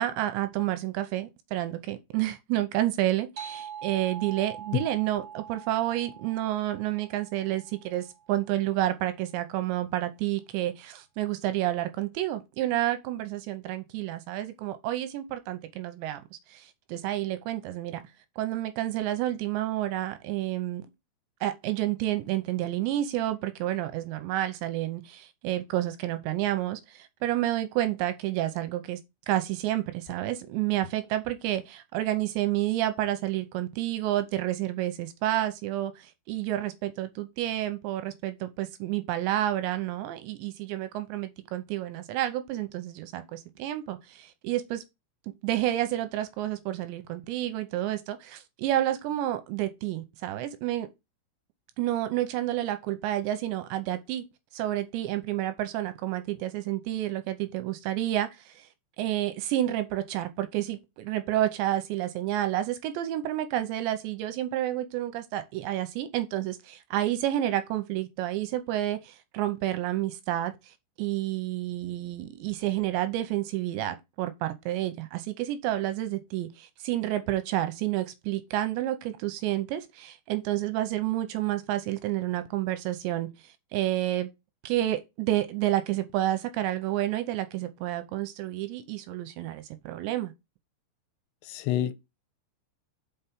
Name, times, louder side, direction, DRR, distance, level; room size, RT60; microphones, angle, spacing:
voice 1, 0.0-18.0 18.4-20.8 21.4-29.0 29.3-44.8 45.4-50.9 51.8-54.3 54.5-58.7 59.0-84.3 84.6-90.3, right 14 dB, 85° right, 2.8 m, -30 dB
sound 1, 3.4-8.3, right 8 dB, 45° right, 1.5 m, -43 dB
voice 2, 91.5-91.9, left 13 dB, 80° left, 2.8 m, -27 dB
5.9 x 5.7 x 5.2 m
omnidirectional pair, 5.5 m